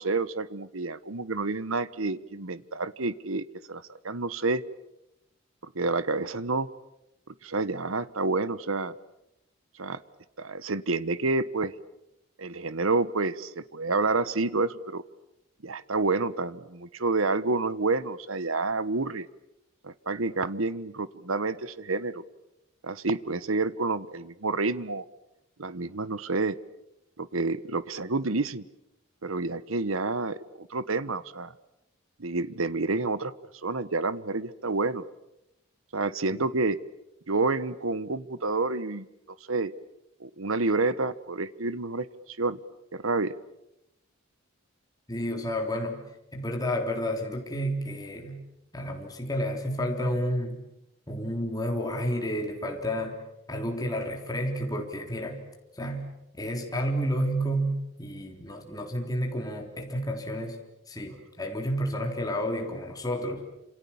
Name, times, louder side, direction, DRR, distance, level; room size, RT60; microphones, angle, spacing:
voice 1, 0.0-4.6 5.6-6.7 7.4-8.9 9.8-10.0 10.4-11.7 12.4-15.0 15.6-19.3 19.8-22.2 22.8-25.0 25.6-26.6 27.2-28.6 29.2-31.5 32.2-33.3 33.6-35.0 35.9-36.8 37.3-39.1 39.5-39.7 40.2-42.6 42.9-43.3, right 3 dB, 80° right, 16 dB, 1.2 m, -29 dB
voice 2, 45.1-46.0 46.3-48.4 48.7-50.6 51.1-53.2 53.5-55.4 55.7-60.6 60.9-63.5, equal, 20° left, 2 dB, 3.6 m, -31 dB
29.5 x 27.5 x 7.2 m, 0.87 s
head